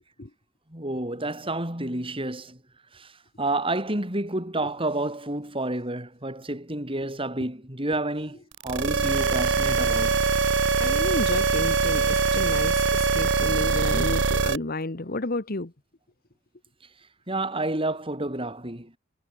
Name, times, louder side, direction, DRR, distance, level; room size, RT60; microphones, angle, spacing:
voice 1, 0.7-2.6 2.9-3.1 3.4-8.4 8.6-10.2 17.3-19.0, right 2 dB, 30° right, 7.1 m, -29 dB
sound 1, 8.6-14.6, right 4 dB, 65° right, 1.0 m, -23 dB
voice 2, 10.8-15.7, left 2 dB, 50° left, 1.3 m, -31 dB
head